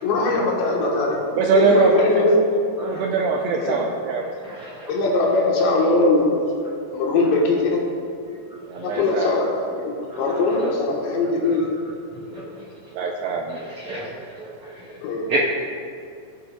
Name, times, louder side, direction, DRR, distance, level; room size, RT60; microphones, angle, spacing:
voice 1, 0.0-1.3 1.5-2.4 3.6-3.8 4.9-6.5 6.9-7.8 8.8-11.7 15.0-15.3, left 2 dB, 75° left, -2 dB, 3.5 m, -21 dB
voice 2, 1.4-4.3 8.7-9.5 12.9-13.6, right 5 dB, 85° right, 1 dB, 2.4 m, -23 dB
voice 3, 2.8-3.0 4.6-4.9 13.8-14.1 15.3-15.4, right 3 dB, 70° right, -6 dB, 1.8 m, -27 dB
18.5 x 9.6 x 2.4 m, 2.4 s
omnidirectional pair, 5.4 m